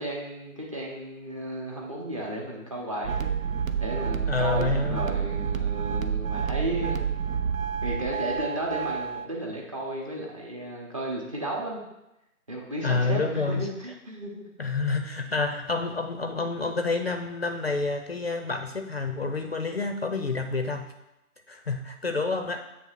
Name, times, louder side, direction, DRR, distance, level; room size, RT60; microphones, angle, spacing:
voice 1, 0.0-3.3 3.8-7.0 7.8-11.8 12.5-14.5, right 1 dB, 20° right, -2 dB, 0.8 m, -33 dB
sound 1, 3.0-9.2, right 7 dB, 65° right, 0.7 m, -29 dB
voice 2, 4.3-5.1 12.8-13.7 14.6-20.9 21.5-22.6, left 3 dB, 45° left, 5 dB, 0.5 m, -28 dB
7.7 x 3.2 x 6.1 m, 0.90 s
figure-of-eight pair, 150°, 45 cm